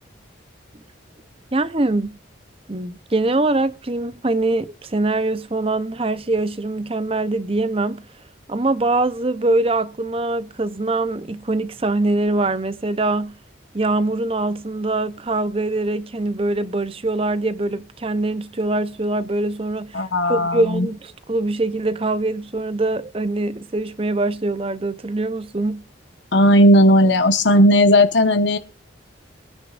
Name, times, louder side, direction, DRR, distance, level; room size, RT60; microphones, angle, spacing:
voice 1, 1.5-2.2 2.7-8.0 8.5-13.4 13.7-20.0 20.3-21.0 21.3-25.8, right 2 dB, 30° right, 0.7 m, -23 dB
voice 2, 19.9-20.9 26.3-28.6, equal, 65° left, 1.2 m, -15 dB
22.5 x 9.9 x 2.5 m
head